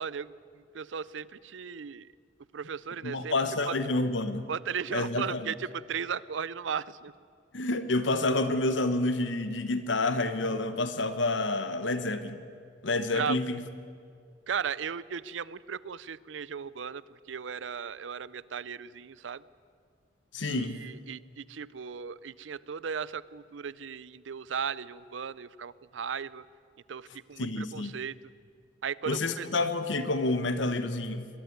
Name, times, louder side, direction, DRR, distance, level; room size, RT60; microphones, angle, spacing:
voice 1, 0.0-2.1 2.5-3.3 3.7-3.8 4.5-7.1 13.1-13.4 14.5-19.4 20.4-26.4 26.9-28.1 28.8-29.5, right 7 dB, 80° right, 20 dB, 0.5 m, -36 dB
voice 2, 3.0-4.5 4.9-5.5 7.5-12.4 12.8-13.6 20.3-20.9 27.4-27.9 29.1-31.3, left 2 dB, 75° left, 11 dB, 1.2 m, -29 dB
21.5 x 12.5 x 9.5 m, 2.3 s
head